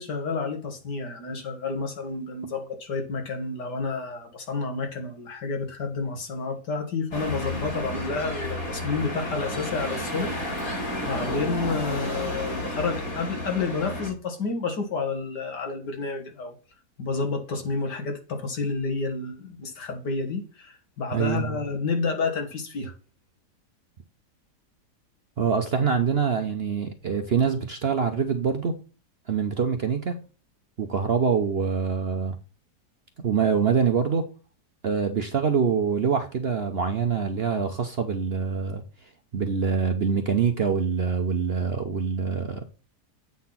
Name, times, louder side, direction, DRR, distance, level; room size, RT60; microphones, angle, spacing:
voice 1, 0.0-10.8 11.1-16.5 17.0-22.9, left 4 dB, 80° left, 2.2 m, -30 dB
sound 1, 7.1-14.1, left 1 dB, 55° left, 4.4 m, -31 dB
voice 2, 21.1-21.6 25.4-28.8 29.3-30.1 30.8-32.3 33.2-34.3 34.8-38.8 39.3-42.6, right 6 dB, 55° right, 0.7 m, -25 dB
8.5 x 4.0 x 5.6 m
omnidirectional pair, 1.8 m